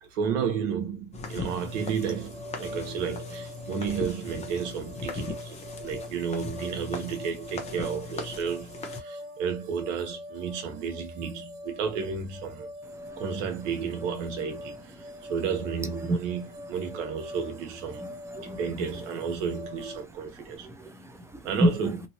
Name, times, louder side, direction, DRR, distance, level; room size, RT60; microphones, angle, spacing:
voice 1, 0.0-12.7 13.1-18.0 18.4-20.7 21.4-22.0, right 6 dB, 85° right, 1.3 m, -32 dB
sound 1, 1.1-9.0, left 3 dB, 20° left, 0.8 m, -39 dB
sound 2, 1.5-20.0, left 1 dB, 60° right, 1.2 m, -43 dB
voice 2, 18.0-18.6 20.6-21.9, equal, 10° right, 0.6 m, -29 dB
2.9 x 2.8 x 2.9 m
supercardioid pair, 125°, 36 cm